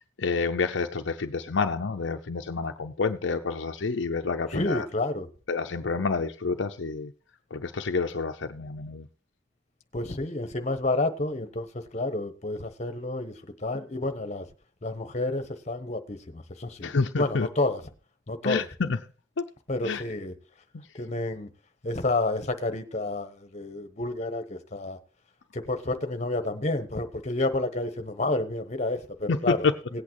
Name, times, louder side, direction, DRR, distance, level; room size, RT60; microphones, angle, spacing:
voice 1, 0.0-4.9 5.5-7.1 7.5-9.1 16.8-17.5 18.4-19.0 19.4-19.5 19.8-20.0 20.7-20.8 29.3-29.7, left 4 dB, 65° left, 0.6 m, -28 dB
voice 2, 4.5-5.3 9.9-14.5 14.8-17.8 18.3-18.6 19.7-20.3 20.9-21.5 21.8-25.0 25.5-30.0, left 2 dB, 35° left, 1.0 m, -30 dB
17.5 x 8.5 x 3.0 m
head